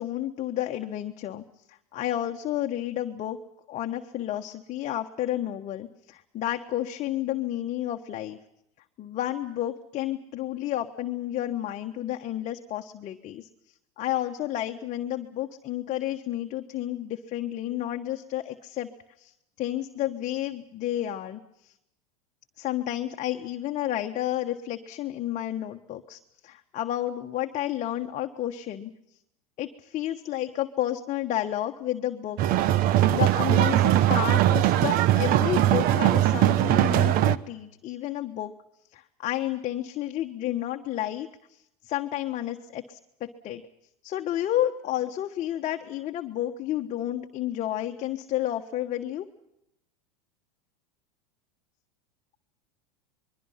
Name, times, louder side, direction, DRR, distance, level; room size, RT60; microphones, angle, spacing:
voice 1, 0.0-3.4 3.7-8.4 9.0-13.5 14.0-18.9 19.2-21.7 22.6-28.9 29.6-32.4 32.8-38.5 38.9-43.6 44.0-49.3, left 13 dB, 40° left, 4 dB, 1.3 m, -31 dB
sound 1, 32.4-37.4, right 13 dB, 45° right, 1.0 m, -21 dB
26.0 x 22.0 x 5.8 m, 0.82 s
hypercardioid pair, 100°, 20 cm